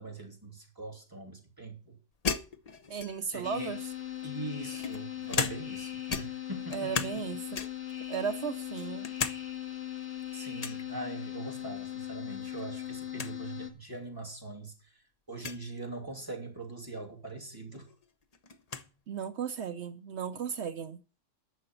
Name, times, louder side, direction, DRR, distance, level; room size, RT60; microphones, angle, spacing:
voice 1, 0.0-2.0 3.3-3.7 4.2-7.1 10.3-14.7 15.3-17.9, right 2 dB, 15° right, 2.8 m, -42 dB
sound 1, 2.2-3.4 4.2-5.8 6.1-7.2 7.5-7.9 8.4-9.4 9.7-9.8 10.6-10.9 12.3-12.6 12.9-13.0 13.2-13.3 14.2-14.3 15.3-15.6 17.3-17.4 17.7-18.9, left 5 dB, 35° left, 0.8 m, -36 dB
voice 2, 2.9-3.9 6.7-7.6 8.1-9.1 19.1-21.0, right 7 dB, 65° right, 1.0 m, -35 dB
sound 2, 3.4-13.7, left 12 dB, 65° left, 2.3 m, -39 dB
10.5 x 6.9 x 7.7 m
omnidirectional pair, 1.3 m